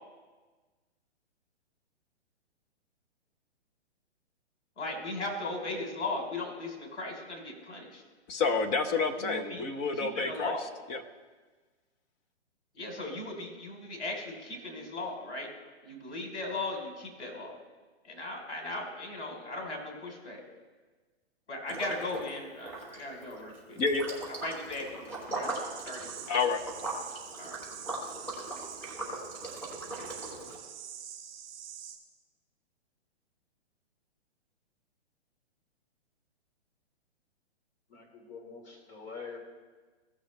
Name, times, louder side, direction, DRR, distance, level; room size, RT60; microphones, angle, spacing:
voice 1, 4.8-8.0 9.0-9.6 9.9-10.6 12.7-15.5 15.8-17.5 18.0-20.4 21.5-23.8 24.4-25.5 25.8-26.1 27.4-27.6, left 2 dB, 75° left, 1 dB, 3.5 m, -37 dB
voice 2, 8.3-10.5 10.9-11.0 23.8-24.2 26.3-26.6, left 4 dB, 20° left, 5 dB, 0.9 m, -29 dB
Liquid, 21.7-22.3 22.6-30.6, right 2 dB, 5° left, 3.0 m, -39 dB
sound 1, 25.4-32.0, right 9 dB, 25° right, 2.6 m, -46 dB
voice 3, 37.9-39.4, left 5 dB, 45° left, -1 dB, 3.5 m, -45 dB
17.5 x 6.4 x 3.2 m, 1.3 s
hypercardioid pair, 145°, 34 cm